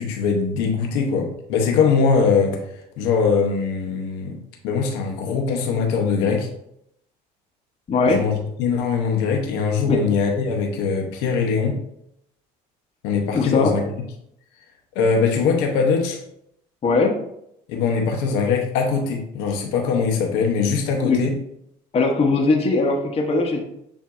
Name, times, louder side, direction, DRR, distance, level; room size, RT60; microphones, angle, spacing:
voice 1, 0.0-2.6 3.0-4.4 4.6-6.5 8.1-8.3 8.6-11.8 13.0-13.8 14.9-16.2 17.7-21.3, left 5 dB, 85° left, 2 dB, 0.7 m, -21 dB
voice 2, 7.9-8.2 9.9-10.0 13.3-13.7 16.8-17.1 21.0-21.2 21.9-23.6, left 3 dB, 35° left, 1 dB, 0.8 m, -19 dB
7.0 x 2.6 x 2.4 m, 0.76 s
supercardioid pair, 90°, 17 cm